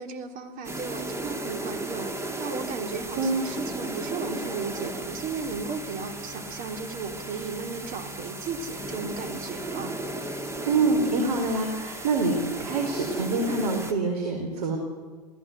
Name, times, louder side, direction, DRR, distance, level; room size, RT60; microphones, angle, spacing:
voice 1, 0.0-2.1 2.4-10.1, right 5 dB, 40° right, 6 dB, 3.3 m, -35 dB
sound 1, 0.6-13.9, right 1 dB, 15° right, 2.2 m, -35 dB
voice 2, 10.6-14.8, right 3 dB, 65° right, 2 dB, 4.4 m, -26 dB
28.0 x 17.5 x 8.0 m, 1.5 s
figure-of-eight pair, 90°, 21 cm